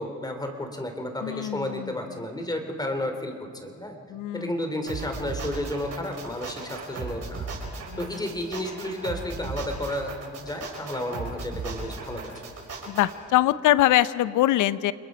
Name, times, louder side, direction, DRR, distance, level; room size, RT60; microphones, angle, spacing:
voice 1, 0.0-4.0 4.3-7.5 8.0-10.1 10.4-12.3, left 1 dB, 15° left, 5 dB, 2.9 m, -32 dB
voice 2, 1.2-1.9 4.1-4.6 7.9-8.3 12.9-14.9, left 14 dB, 80° left, 17 dB, 0.7 m, -23 dB
sound 1, 4.9-13.1, right 4 dB, 55° right, 5.5 m, -36 dB
28.5 x 21.0 x 5.1 m, 2.4 s
cardioid pair, 90°, 30 cm